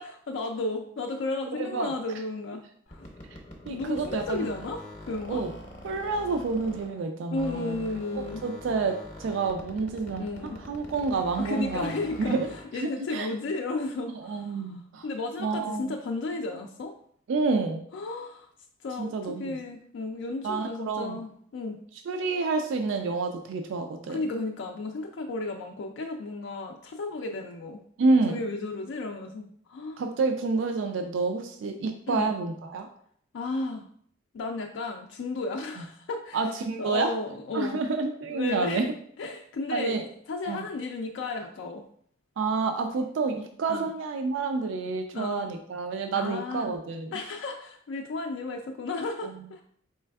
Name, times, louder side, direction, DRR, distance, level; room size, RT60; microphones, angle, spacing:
voice 1, 0.0-2.6 2.9-3.1 3.7-5.4 7.3-8.4 10.2-10.6 11.4-12.4 12.7-16.9 17.9-18.5 18.8-19.1 19.4-21.8 24.1-27.8 28.3-30.0 32.1-32.3 33.3-33.9 34.3-36.4 36.8-37.8 38.3-38.9 39.2-40.0 40.3-41.8 43.7-43.9 45.1-45.5 46.1-46.8 47.1-49.6, left 3 dB, 75° left, 2 dB, 0.3 m, -33 dB
voice 2, 1.5-1.9 3.7-4.5 5.3-5.5 5.8-7.8 8.2-11.9 12.2-12.5 12.8-13.3 14.2-15.1 15.4-16.0 17.3-17.8 19.0-19.6 20.4-21.2 22.1-24.2 28.0-28.4 30.0-32.9 35.8-35.9 36.3-37.1 37.5-38.9 39.7-40.0 40.5-40.7 42.4-47.1 49.2-49.4, right 4 dB, 80° right, 5 dB, 0.3 m, -29 dB
sound 1, 2.9-7.1 7.4-12.8, left 1 dB, 40° left, 0.7 m, -44 dB
4.4 x 3.2 x 2.3 m, 0.63 s
head